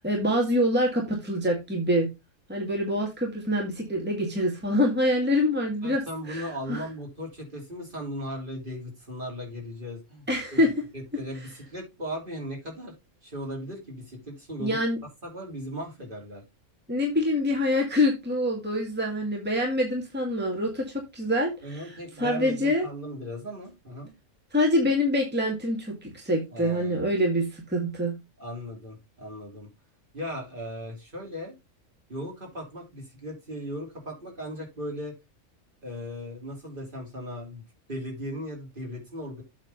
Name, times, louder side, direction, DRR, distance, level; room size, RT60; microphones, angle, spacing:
voice 1, 0.0-2.1 2.5-6.0 6.3-6.8 10.3-10.7 14.6-15.0 16.9-21.8 22.2-22.9 24.5-28.1, left 1 dB, 5° right, -1 dB, 2.1 m, -25 dB
voice 2, 5.8-10.3 10.5-10.7 10.9-12.9 13.2-14.8 15.2-16.4 21.6-24.1 26.5-27.1 28.4-29.7 30.1-31.5 32.1-35.1 35.8-37.6 37.9-39.4, equal, 35° right, 0 dB, 3.3 m, -37 dB
8.3 x 4.0 x 5.4 m, 0.24 s
omnidirectional pair, 1.5 m